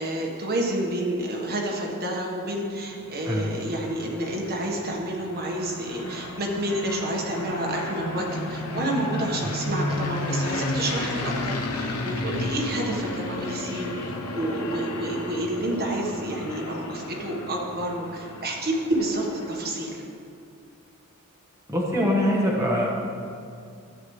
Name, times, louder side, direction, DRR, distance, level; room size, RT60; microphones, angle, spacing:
voice 1, 0.0-20.0, right 1 dB, 45° right, -1 dB, 1.3 m, -29 dB
sound 1, 2.8-20.0, left 2 dB, 90° left, 0.9 m, -33 dB
voice 2, 21.7-22.9, equal, 15° right, -4 dB, 1.2 m, -23 dB
13.5 x 8.5 x 3.2 m, 2.4 s
head